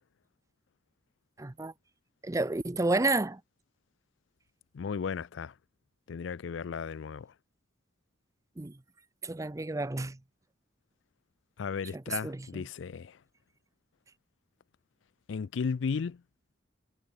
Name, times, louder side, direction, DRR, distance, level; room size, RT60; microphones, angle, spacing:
voice 1, 1.4-1.7 2.2-3.4 8.6-8.8 9.2-10.2 12.1-12.6, right 2 dB, 15° right, 0.5 m, -30 dB
voice 2, 4.7-5.5 6.1-7.3 11.6-13.2 15.3-16.2, left 5 dB, 85° left, 0.4 m, -35 dB
head